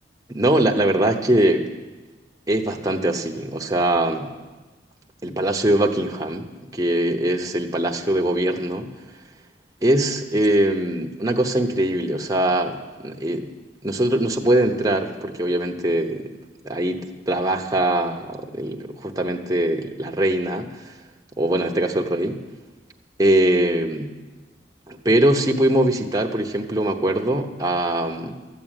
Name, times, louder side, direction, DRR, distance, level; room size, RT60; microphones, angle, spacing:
voice 1, 0.3-1.7 2.5-4.3 5.2-6.5 6.7-8.9 9.8-13.5 13.8-16.3 16.6-20.9 21.4-22.4 23.2-24.1 24.9-28.3, right 1 dB, 20° right, 2 dB, 0.9 m, -22 dB
13.5 x 7.7 x 9.0 m, 1.2 s
head